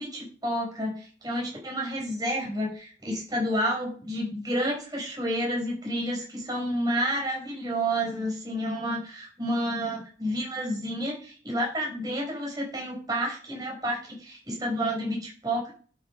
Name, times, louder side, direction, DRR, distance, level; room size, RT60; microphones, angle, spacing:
voice 1, 0.0-15.7, equal, 20° right, -2 dB, 6.0 m, -30 dB
11.5 x 7.2 x 5.6 m, 0.40 s
head